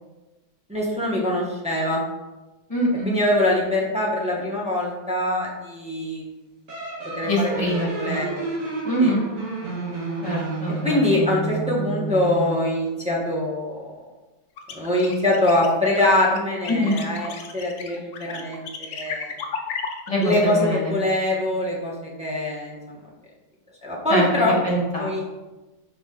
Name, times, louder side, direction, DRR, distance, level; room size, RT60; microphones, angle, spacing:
voice 1, 0.7-2.0 3.0-6.2 7.2-8.4 9.0-9.1 10.8-13.9 14.7-19.3 20.2-21.9 22.2-23.0 23.8-24.6 25.0-25.3, left 1 dB, 5° right, -5 dB, 0.6 m, -23 dB
voice 2, 2.7-3.1 7.2-8.2 8.8-9.2 10.2-11.3 16.7-17.0 20.1-20.9 24.1-25.1, equal, 20° left, -5 dB, 1.6 m, -24 dB
sound 1, 6.7-12.7, right 3 dB, 45° right, 1.6 m, -31 dB
sound 2, 14.6-20.4, left 5 dB, 85° left, 0.7 m, -34 dB
5.1 x 5.0 x 3.8 m, 1.1 s
omnidirectional pair, 2.2 m